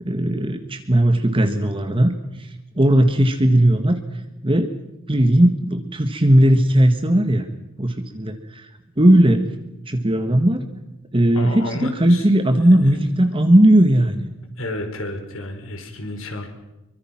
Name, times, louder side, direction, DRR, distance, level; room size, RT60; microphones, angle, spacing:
voice 1, 0.0-2.1 2.4-4.0 4.4-4.7 5.1-7.5 7.8-8.7 9.0-9.4 9.9-10.6 11.1-14.3, right 1 dB, 25° right, 6 dB, 1.7 m, -17 dB
voice 2, 11.3-12.3 12.8-13.0 14.6-16.5, left 1 dB, 70° left, 5 dB, 5.2 m, -31 dB
25.5 x 24.0 x 6.0 m, 0.96 s
head